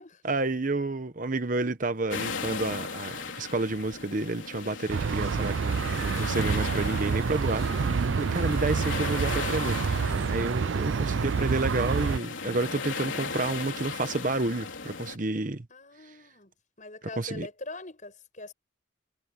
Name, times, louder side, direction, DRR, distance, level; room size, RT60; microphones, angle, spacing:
voice 1, 0.2-15.7 17.2-17.5, right 2 dB, 45° right, 1.0 m, -30 dB
sound 1, 2.1-15.2, left 4 dB, 80° left, 3.4 m, -37 dB
sound 2, 4.9-12.2, right 5 dB, 75° right, 0.4 m, -28 dB
voice 2, 15.7-16.5 16.8-18.5, left 2 dB, 40° left, 7.1 m, -42 dB
head